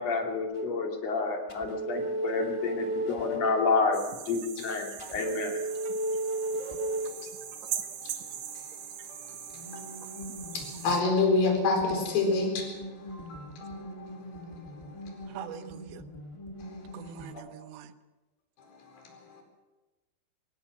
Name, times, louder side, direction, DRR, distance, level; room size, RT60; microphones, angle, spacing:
voice 1, 0.0-5.6, left 4 dB, 40° left, 3.5 m, -29 dB
sound 1, 0.5-0.7 1.5-3.7 5.0-7.1 9.5-17.3, right 1 dB, 15° left, 1.0 m, -36 dB
sound 2, 3.9-11.0, right 9 dB, 65° right, 1.8 m, -41 dB
voice 2, 6.4-15.7 16.6-17.5 18.6-19.4, left 3 dB, 60° left, 6.2 m, -32 dB
voice 3, 15.3-16.0 16.9-17.9, right 10 dB, 90° right, 3.4 m, -43 dB
24.0 x 19.0 x 6.1 m
omnidirectional pair, 5.0 m